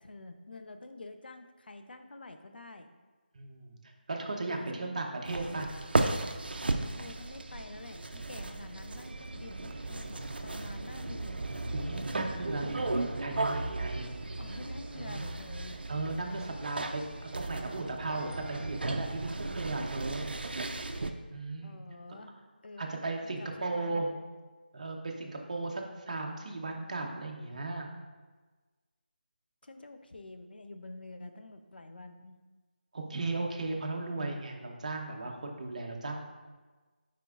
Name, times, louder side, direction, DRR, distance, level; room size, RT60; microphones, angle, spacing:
voice 1, 0.0-2.9 4.5-4.9 6.6-11.4 13.9-15.8 21.6-22.4 22.6-23.0 23.4-24.1 29.6-32.4, left 2 dB, 65° left, 7 dB, 0.6 m, -48 dB
voice 2, 3.3-5.7 11.7-14.1 15.0-15.3 15.9-20.3 21.3-21.8 22.1-22.2 22.8-24.1 24.7-27.9 32.9-36.2, right 2 dB, 45° right, 2 dB, 0.8 m, -36 dB
sound 1, 5.2-21.1, right 2 dB, 70° right, 0.5 m, -35 dB
9.2 x 4.4 x 2.4 m, 1.3 s
figure-of-eight pair, 170°, 6 cm